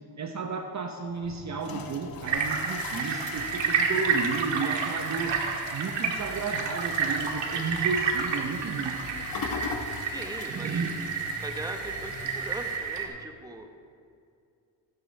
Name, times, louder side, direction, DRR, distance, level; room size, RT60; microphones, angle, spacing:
voice 1, 0.2-5.4 5.7-9.0 10.4-11.1, right 4 dB, 35° right, 4 dB, 1.0 m, -33 dB
sound 1, 1.1-12.8, left 5 dB, 50° left, 1.3 m, -41 dB
sound 2, 1.2-13.1, left 1 dB, 25° left, 3.3 m, -47 dB
sound 3, 2.3-13.1, right 6 dB, 70° right, 1.7 m, -30 dB
voice 2, 10.0-13.7, right 2 dB, 10° right, 5 dB, 1.3 m, -40 dB
16.0 x 9.5 x 3.4 m, 2.4 s
supercardioid pair, 70°, 46 cm